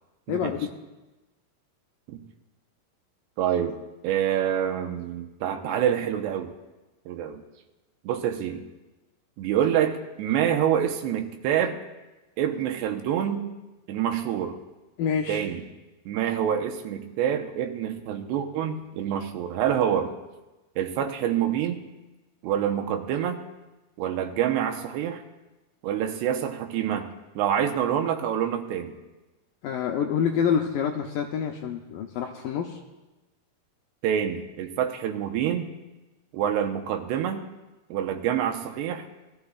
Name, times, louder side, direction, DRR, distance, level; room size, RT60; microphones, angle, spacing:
voice 1, 0.3-0.6 15.0-15.5 29.6-32.8, left 7 dB, 80° left, 2 dB, 2.0 m, -27 dB
voice 2, 3.4-3.8 4.0-6.5 7.1-7.4 8.0-8.6 9.4-11.8 12.4-13.5 13.9-14.6 15.3-15.6 16.1-20.1 20.8-21.8 22.4-23.4 24.0-25.2 25.8-27.1 27.4-29.0 34.0-35.7 36.3-37.4 37.9-39.0, right 9 dB, 90° right, 4 dB, 3.1 m, -26 dB
21.0 x 14.0 x 2.4 m, 1.1 s
omnidirectional pair, 4.7 m